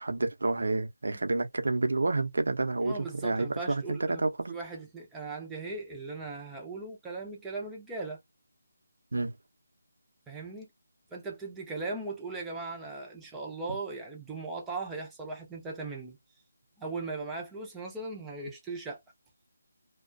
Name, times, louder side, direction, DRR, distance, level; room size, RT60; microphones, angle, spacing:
voice 1, 0.0-4.5 9.1-9.3, right 2 dB, 75° right, 0.7 m, -29 dB
voice 2, 2.8-4.2 4.5-8.2 10.3-10.7 11.1-16.2 16.8-19.0, right 3 dB, 5° right, 0.4 m, -38 dB
2.3 x 2.2 x 2.5 m
figure-of-eight pair, 175°, 0 cm